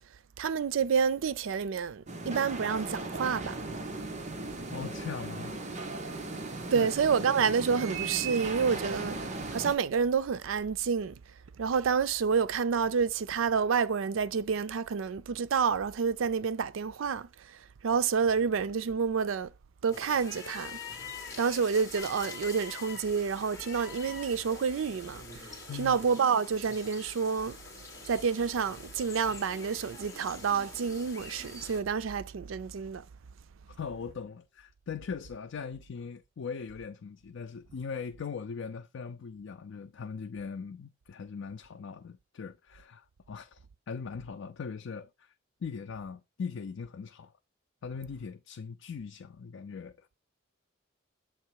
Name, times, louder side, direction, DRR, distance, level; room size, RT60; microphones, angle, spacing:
voice 1, 0.4-3.5 6.7-9.2 9.5-11.1 11.6-17.3 17.8-19.5 19.8-20.8 21.4-25.2 25.8-27.6 28.1-33.0, right 6 dB, 80° right, 0.4 m, -28 dB
sound 1, 2.1-9.7, right 3 dB, 35° right, 0.9 m, -37 dB
voice 2, 4.7-5.9 6.7-6.9 7.2-7.3 7.7-7.8 25.7-26.0 33.7-45.3 45.6-47.3 47.8-50.2, left 5 dB, 75° left, 0.4 m, -40 dB
sound 2, 19.9-31.8, left 4 dB, 15° left, 2.1 m, -45 dB
7.4 x 3.1 x 4.5 m
head